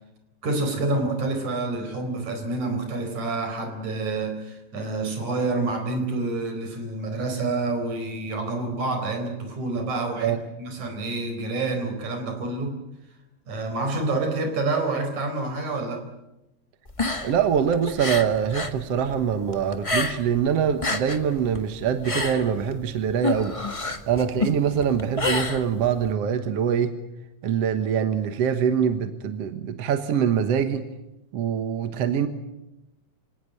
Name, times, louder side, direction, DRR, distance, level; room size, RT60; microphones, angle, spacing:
voice 1, 0.4-12.8 13.5-16.0, right 2 dB, 80° right, 6 dB, 5.8 m, -28 dB
sound 1, 16.9-18.8 19.1-20.4 20.7-26.1, left 2 dB, 25° left, 0.7 m, -28 dB
voice 2, 17.2-23.6 24.1-27.0 27.4-30.9 31.3-32.3, right 8 dB, 60° right, 9 dB, 2.2 m, -24 dB
27.0 x 18.0 x 9.1 m, 0.93 s
omnidirectional pair, 3.3 m